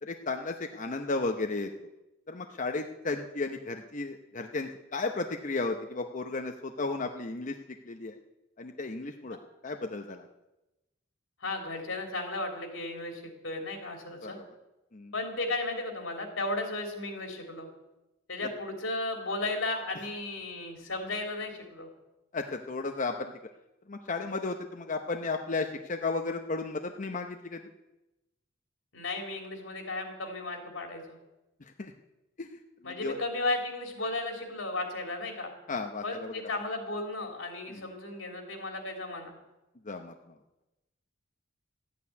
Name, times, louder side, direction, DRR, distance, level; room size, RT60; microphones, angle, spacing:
voice 1, 0.0-1.7 2.3-7.6 7.9-8.2 8.6-9.4 9.6-10.3 14.2-14.5 14.9-15.1 22.3-23.3 23.9-27.6 31.8-31.9 32.4-32.5 32.8-33.2 35.7-36.3 37.7-37.9 39.8-40.1, left 3 dB, 40° left, 5 dB, 0.8 m, -34 dB
voice 2, 11.4-14.4 15.1-17.7 18.3-21.9 28.9-31.2 32.8-35.5 36.0-39.3, left 2 dB, 90° left, 3 dB, 3.3 m, -35 dB
14.0 x 8.6 x 9.4 m, 0.99 s
head